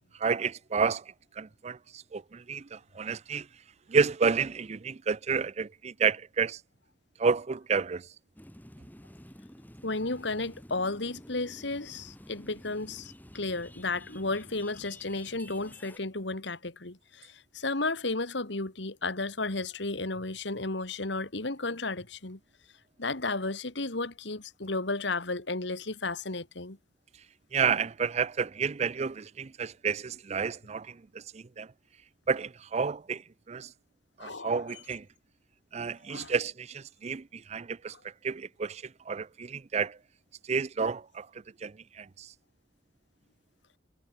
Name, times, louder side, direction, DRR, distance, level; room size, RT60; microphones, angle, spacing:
voice 1, 0.2-1.0 1.4-3.5 3.9-6.6 7.2-8.1 27.5-31.7 32.3-33.2 33.5-33.7 34.2-35.1 35.7-37.9 38.2-40.0 40.5-41.3 41.6-42.3, right 5 dB, 35° right, 0.4 m, -30 dB
sound 1, 8.4-16.0, equal, 10° left, 4.8 m, -51 dB
voice 2, 9.8-22.4 23.0-26.8 34.2-34.6 36.1-36.3 37.9-38.0, left 3 dB, 65° left, 2.1 m, -33 dB
head